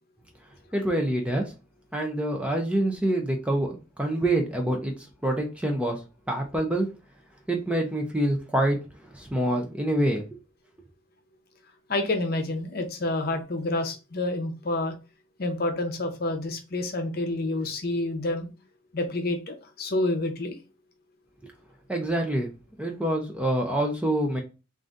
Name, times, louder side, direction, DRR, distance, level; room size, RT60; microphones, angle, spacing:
voice 1, 0.7-1.5 1.9-4.9 5.2-6.0 6.3-6.9 7.5-8.8 9.1-10.2 21.9-22.5 22.8-24.4, right 1 dB, 5° right, 0.5 m, -26 dB
voice 2, 11.9-14.9 15.4-18.5 18.9-20.6, left 2 dB, 50° left, 0.7 m, -28 dB
3.8 x 2.5 x 3.7 m
head